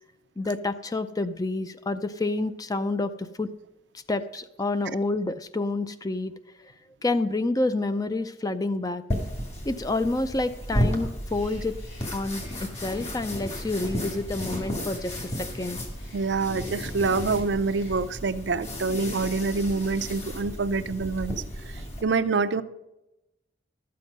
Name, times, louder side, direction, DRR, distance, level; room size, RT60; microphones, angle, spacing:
voice 1, 0.4-3.5 4.1-6.3 7.0-9.0 9.6-11.8 12.1-15.9, left 2 dB, 20° left, 11 dB, 0.4 m, -28 dB
sound 1, 9.1-22.0, equal, 40° left, 2.1 m, -33 dB
Bird, 11.2-18.3, left 2 dB, 90° left, 2.6 m, -54 dB
voice 2, 16.1-21.4 21.7-22.6, right 4 dB, 75° right, 12 dB, 0.5 m, -26 dB
12.5 x 7.7 x 5.3 m, 0.94 s
head